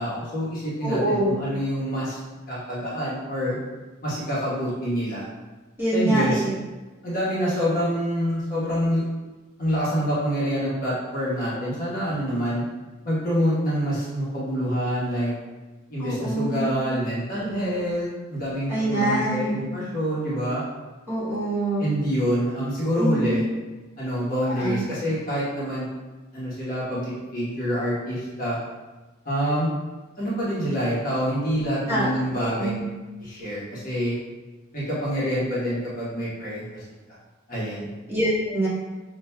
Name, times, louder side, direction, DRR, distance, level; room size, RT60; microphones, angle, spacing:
voice 1, 0.0-2.2 2.5-3.6 4.0-5.2 5.9-6.5 7.0-9.1 9.6-12.6 13.0-15.3 15.9-20.6 21.8-23.4 24.0-25.9 26.3-28.6 29.2-29.7 30.2-32.7 33.2-34.1 34.7-36.8 37.5-37.9, equal, 45° left, -9 dB, 1.1 m, -26 dB
voice 2, 0.8-1.4 5.8-6.5 16.0-16.8 18.7-19.7 21.1-21.9 22.9-23.4 24.6-24.9 31.9-32.1 32.4-32.9 38.1-38.7, right 1 dB, 10° right, -12 dB, 1.4 m, -25 dB
5.5 x 2.6 x 2.2 m, 1.2 s
head